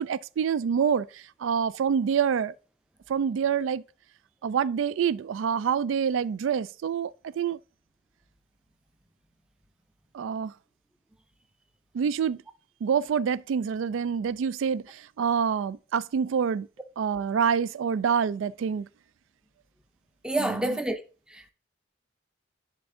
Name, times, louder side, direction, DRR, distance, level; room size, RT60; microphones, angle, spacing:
voice 1, 0.0-2.5 3.1-3.8 4.4-7.6 10.1-10.5 11.9-12.4 12.8-16.7 17.0-18.9 20.4-20.8, right 7 dB, 85° right, 0.3 m, -27 dB
voice 2, 20.2-21.0 21.3-21.5, right 1 dB, 5° right, 0.5 m, -28 dB
10.5 x 3.6 x 3.7 m
head